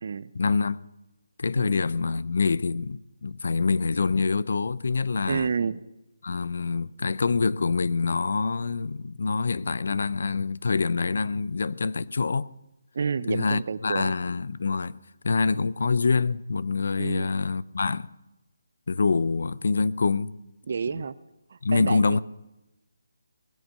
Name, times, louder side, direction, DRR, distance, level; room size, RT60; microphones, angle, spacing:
voice 1, 0.3-0.8 1.4-5.5 6.2-12.5 13.3-14.9 15.2-18.1 18.9-20.4 21.6-22.2, left 4 dB, 65° left, 0.5 m, -25 dB
voice 2, 5.3-5.8 12.9-14.1 17.0-17.3 20.7-21.2 21.5-22.2, right 5 dB, 55° right, 0.6 m, -29 dB
19.0 x 8.8 x 6.4 m
hypercardioid pair, 160°, 0 cm